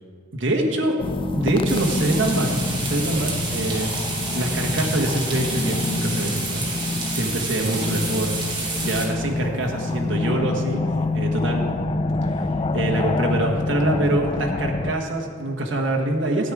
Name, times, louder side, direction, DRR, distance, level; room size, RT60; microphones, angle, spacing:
voice 1, 0.3-1.0 1.3-6.7 7.1-10.8 11.1-11.7 12.7-16.5, right 1 dB, 70° right, 1 dB, 1.5 m, -25 dB
sound 1, 1.0-14.9, left 3 dB, 25° left, 0.4 m, -26 dB
sound 2, 1.7-9.1, right 3 dB, 25° right, 2.5 m, -29 dB
14.0 x 9.4 x 4.9 m, 2.3 s
head